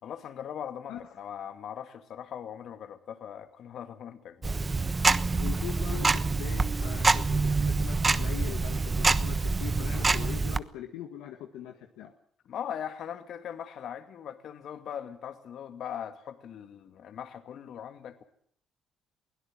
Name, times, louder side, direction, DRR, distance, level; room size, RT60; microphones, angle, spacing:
voice 1, 0.0-4.6 12.5-18.2, left 9 dB, 65° left, 2.3 m, -40 dB
Tick-tock, 4.4-10.6, right 3 dB, 30° right, 1.1 m, -26 dB
voice 2, 5.3-12.1, left 11 dB, 85° left, 1.7 m, -41 dB
22.5 x 17.0 x 7.6 m
supercardioid pair, 70°, 0 cm